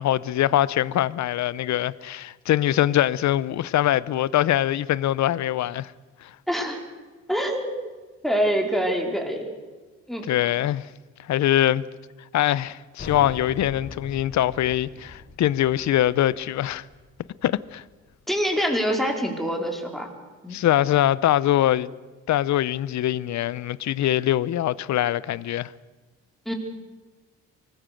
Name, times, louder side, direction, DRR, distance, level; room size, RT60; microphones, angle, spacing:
voice 1, 0.0-5.9 6.2-6.3 10.3-10.9 11.3-11.8 12.3-16.8 17.4-17.8 20.5-21.9 22.3-25.7, left 12 dB, 65° left, 0.8 m, -23 dB
voice 2, 6.5-6.8 7.3-7.8 8.2-9.5 10.1-10.3 18.3-20.1 20.4-20.6 26.5-26.6, equal, ahead, 4.5 m, -25 dB
sound 1, 13.0-18.3, left 3 dB, 40° left, 4.4 m, -42 dB
24.5 x 19.5 x 6.6 m
cardioid pair, 90°, 30 cm